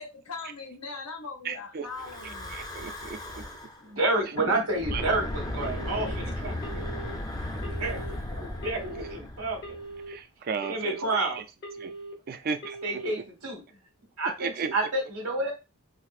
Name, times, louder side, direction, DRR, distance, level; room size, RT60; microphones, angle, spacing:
voice 1, 0.0-2.6 3.8-3.9 8.1-8.7 13.7-13.8, left 4 dB, 80° left, 3 dB, 0.8 m, -41 dB
voice 2, 1.4-1.9 2.2-3.4 4.9-5.0 9.0-9.1 10.1-11.0 11.4-11.5 11.8-11.9 12.3-13.0 14.4-14.8, right 5 dB, 45° right, 8 dB, 0.4 m, -35 dB
Breathing / Wind, 1.8-3.8 4.7-10.1, left 1 dB, 20° left, 0.5 m, -36 dB
voice 3, 3.8-6.8 7.5-8.0 8.4-9.7 10.7-11.4 12.8-13.6 14.2-15.5, right 2 dB, 85° right, 0 dB, 1.4 m, -29 dB
Telephone, 5.6-6.1 6.6-7.1 7.6-8.1 8.6-9.1 9.6-10.1 10.6-11.1 11.6-12.1 12.6-13.1, right 2 dB, 50° left, 1.0 m, -41 dB
4.0 x 2.0 x 2.5 m, 0.27 s
head